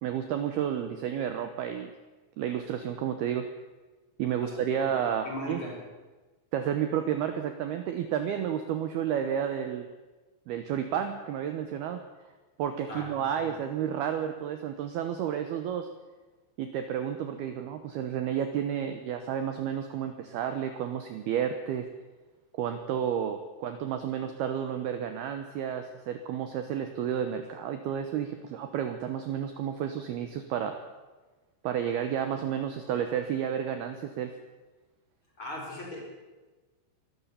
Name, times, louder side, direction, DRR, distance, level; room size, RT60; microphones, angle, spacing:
voice 1, 0.0-1.9 2.4-3.5 4.2-5.6 6.5-9.9 10.5-12.0 12.6-15.9 16.6-21.9 22.5-30.8 31.6-34.3, right 9 dB, 75° right, 7 dB, 2.4 m, -31 dB
voice 2, 4.4-4.9 5.2-5.8 12.9-13.4 35.4-36.0, left 1 dB, 25° left, -1 dB, 5.6 m, -39 dB
23.0 x 13.0 x 8.5 m, 1.2 s
omnidirectional pair, 5.9 m